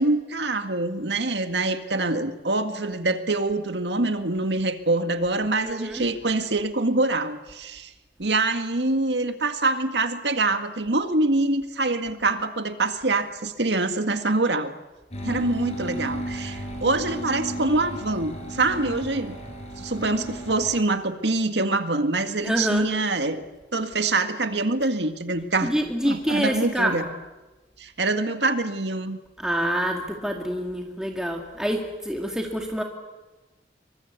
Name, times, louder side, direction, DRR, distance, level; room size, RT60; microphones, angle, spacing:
voice 1, 0.0-7.9 8.2-14.7 15.2-19.4 19.8-23.4 23.7-25.7 26.0-27.1 27.8-29.2, right 2 dB, 80° right, 8 dB, 1.9 m, -25 dB
voice 2, 5.6-6.0 22.4-22.9 25.6-27.1 29.4-32.8, equal, 5° right, 1 dB, 2.1 m, -26 dB
sound 1, 15.1-20.8, equal, 40° left, 6.3 m, -34 dB
27.5 x 24.0 x 8.3 m, 1.1 s
head